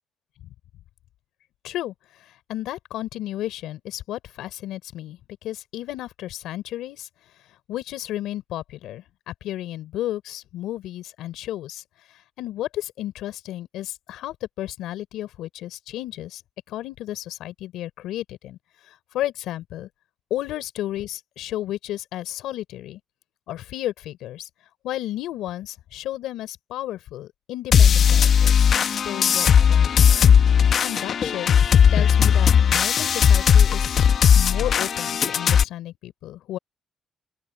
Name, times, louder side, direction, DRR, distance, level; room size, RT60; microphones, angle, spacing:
voice 1, 1.6-7.1 7.7-11.8 12.1-16.4 16.7-18.6 18.9-19.9 20.3-23.0 23.5-24.5 24.8-30.1 30.5-34.1 34.3-36.6, left 14 dB, 90° left, 4.6 m, -33 dB
sound 1, 27.7-35.6, left 7 dB, 60° left, 1.0 m, -17 dB
open air
cardioid pair, 75°, 0 cm